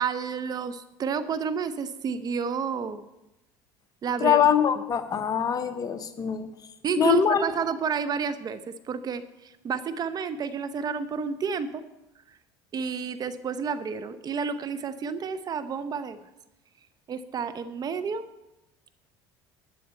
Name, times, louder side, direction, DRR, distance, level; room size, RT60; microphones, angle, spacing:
voice 1, 0.0-3.1 4.0-4.4 6.8-11.8 12.3-12.4 12.7-16.2 17.1-18.3, right 6 dB, 40° right, 13 dB, 0.8 m, -30 dB
voice 2, 4.2-6.5 7.0-7.5, left 8 dB, 35° left, 9 dB, 1.0 m, -23 dB
12.0 x 10.0 x 4.4 m, 0.94 s
supercardioid pair, 90°, 10 cm